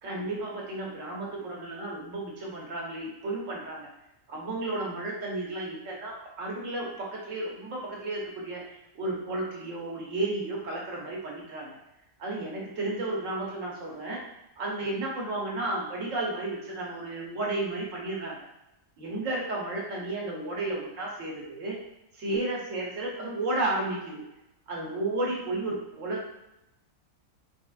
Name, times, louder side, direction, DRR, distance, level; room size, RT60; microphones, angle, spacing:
voice 1, 0.0-3.9 4.3-11.8 12.2-14.2 14.6-18.4 19.0-21.8 22.1-24.2 24.7-26.3, right 2 dB, 60° right, -3 dB, 1.4 m, -33 dB
4.9 x 3.5 x 2.4 m, 0.89 s
omnidirectional pair, 1.5 m